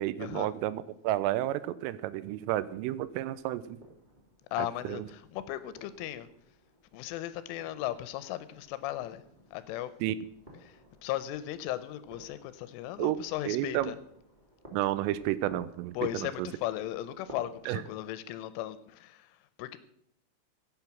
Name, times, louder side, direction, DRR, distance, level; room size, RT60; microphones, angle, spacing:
voice 1, 0.0-3.8 4.6-5.1 10.0-10.2 13.0-13.2 13.5-13.9 14.7-16.5 17.7-17.8, right 14 dB, 90° right, 3.3 m, -31 dB
sound 1, 2.7-17.8, equal, 45° right, 0.5 m, -56 dB
voice 2, 4.5-6.3 6.9-9.2 9.5-9.9 10.6-14.0 16.0-19.8, left 13 dB, 85° left, 3.2 m, -36 dB
15.5 x 8.6 x 6.0 m
omnidirectional pair, 5.7 m